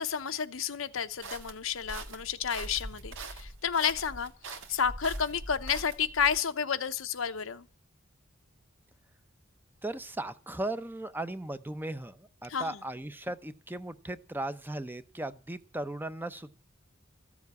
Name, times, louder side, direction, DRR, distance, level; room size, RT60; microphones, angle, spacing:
voice 1, 0.0-4.3 4.7-7.7 12.5-12.8, left 7 dB, 85° left, 0.9 m, -31 dB
sound 1, 1.2-6.4, right 2 dB, 70° right, 1.8 m, -42 dB
voice 2, 9.8-16.5, right 1 dB, 10° right, 0.7 m, -37 dB
14.0 x 7.3 x 9.5 m
head